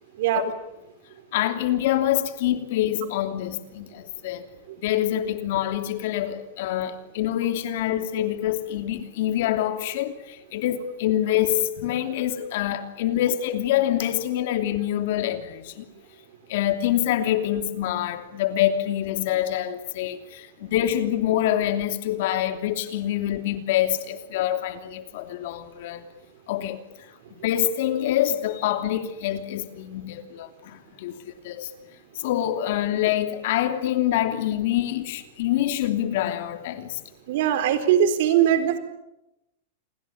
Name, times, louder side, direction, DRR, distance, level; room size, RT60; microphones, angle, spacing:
voice 1, 1.3-4.5 4.8-15.9 16.5-26.0 26.5-26.8 27.4-31.7 32.1-37.0, left 12 dB, 60° left, 2.9 m, -26 dB
voice 2, 37.3-38.8, right 10 dB, 60° right, 4.0 m, -20 dB
28.5 x 21.5 x 8.7 m
supercardioid pair, 150°, 0 cm